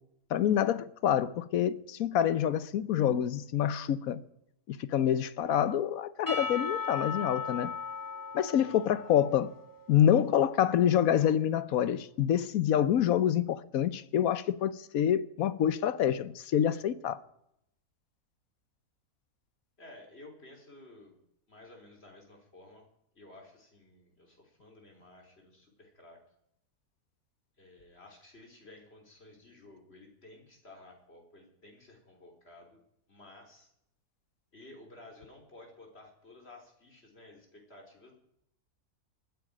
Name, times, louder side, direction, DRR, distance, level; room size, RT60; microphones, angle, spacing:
voice 1, 0.3-4.2 4.7-7.7 8.3-9.5 9.9-17.2, left 10 dB, 70° left, 1.2 m, -27 dB
Percussion / Church bell, 6.3-10.6, left 5 dB, 15° left, 1.8 m, -38 dB
voice 2, 8.5-8.8 19.8-21.2 21.5-22.8 23.1-26.2 27.6-32.8 33.1-33.7 34.5-38.1, left 2 dB, 45° left, 4.1 m, -54 dB
20.0 x 14.0 x 5.1 m
omnidirectional pair, 1.6 m